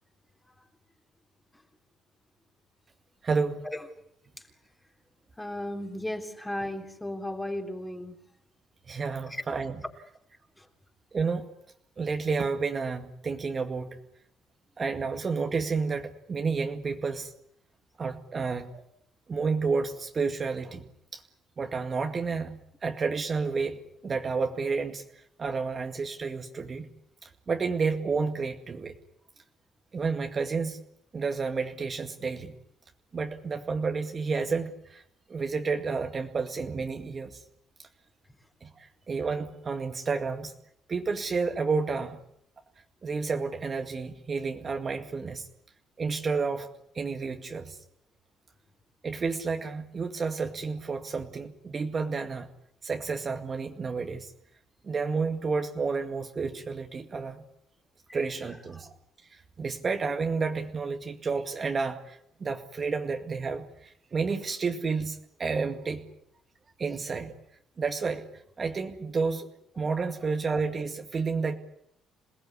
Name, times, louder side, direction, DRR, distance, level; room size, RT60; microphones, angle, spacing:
voice 1, 3.2-3.7 8.9-9.8 11.1-11.5 12.0-14.0 14.8-17.3 18.0-18.7 19.3-20.8 21.1-21.2 21.6-25.0 25.4-26.9 27.2-28.9 29.9-30.8 31.1-32.5 33.1-35.0 35.3-37.4 37.8-37.9 38.6-40.5 40.9-42.2 43.0-45.5 46.0-47.8 49.0-52.5 52.8-54.3 54.8-57.4 58.1-58.9 59.6-66.1 66.8-67.3 67.8-68.3 68.6-69.5 69.8-71.5, right 4 dB, 30° right, 5 dB, 2.1 m, -30 dB
voice 2, 5.4-8.2 9.3-9.4 10.6-10.7 58.1-58.2, left 1 dB, 5° left, 5 dB, 3.6 m, -35 dB
27.5 x 19.0 x 9.8 m, 0.73 s
cardioid pair, 125°, 0 cm